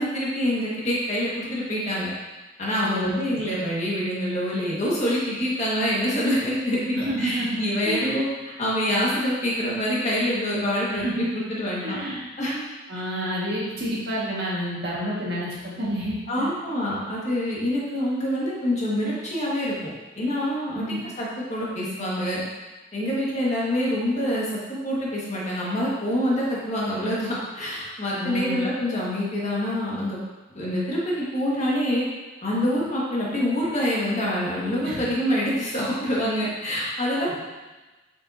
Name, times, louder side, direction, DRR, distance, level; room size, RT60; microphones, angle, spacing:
voice 1, 0.0-2.1 2.6-8.3 8.6-12.0 12.4-12.6 16.3-19.7 20.2-22.4 22.9-30.2 30.5-32.0 32.4-37.3, equal, 40° left, -6 dB, 1.7 m, -26 dB
voice 2, 2.8-3.4 6.9-8.2 10.9-11.3 11.8-12.2 12.9-16.5 20.7-21.0 28.2-28.7 34.8-35.1 37.3-37.4, equal, 60° right, -5 dB, 1.8 m, -29 dB
7.3 x 5.6 x 2.7 m, 1.2 s
head